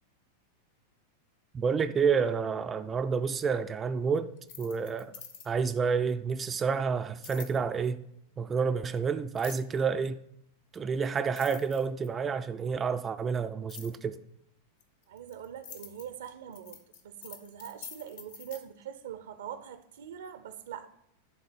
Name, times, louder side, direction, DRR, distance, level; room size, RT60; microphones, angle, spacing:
voice 1, 1.5-4.3 4.6-5.1 5.5-8.0 8.4-10.2 10.7-14.2, right 5 dB, 20° right, 0.4 m, -29 dB
sound 1, 4.4-5.7 7.2-7.6 9.4-9.8 10.8-10.9 11.2-12.3 13.7-14.0 14.8-18.6, left 6 dB, 55° left, 1.2 m, -47 dB
voice 2, 15.1-20.9, right 9 dB, 60° right, 0.6 m, -43 dB
10.0 x 3.9 x 6.9 m
figure-of-eight pair, 90°, 0 cm